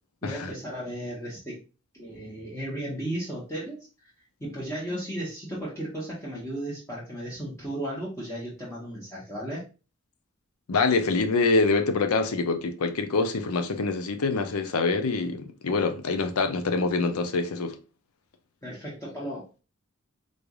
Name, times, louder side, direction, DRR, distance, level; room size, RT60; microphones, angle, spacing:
voice 1, 0.2-1.6 1.9-4.1 4.4-9.6 18.6-19.6, right 1 dB, 15° left, 0.9 m, -35 dB
voice 2, 10.7-17.8, left 3 dB, 80° left, 0.6 m, -25 dB
3.9 x 3.3 x 2.3 m
head